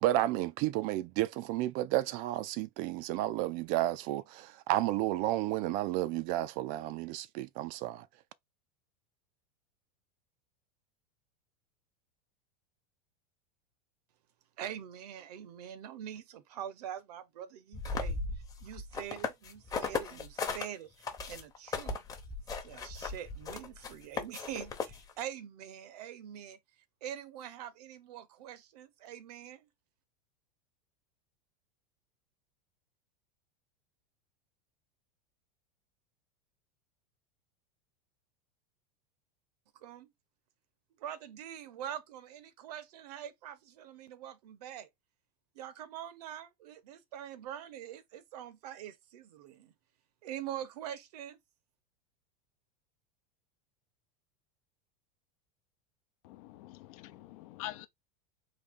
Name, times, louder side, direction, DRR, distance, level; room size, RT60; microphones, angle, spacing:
voice 1, 0.0-8.1, right 15 dB, 40° right, 0.4 m, -32 dB
voice 2, 14.6-18.2 18.6-20.9 21.2-22.0 22.6-26.6 27.0-29.7 39.7-40.1 41.0-44.9 45.5-49.7 50.2-51.4, right 10 dB, 75° right, 0.9 m, -44 dB
sound 1, 17.7-20.7 21.0-25.2, left 4 dB, 15° left, 0.9 m, -37 dB
voice 3, 56.2-57.9, left 15 dB, 60° left, 0.7 m, -45 dB
4.0 x 2.8 x 3.5 m
supercardioid pair, 145°, 20 cm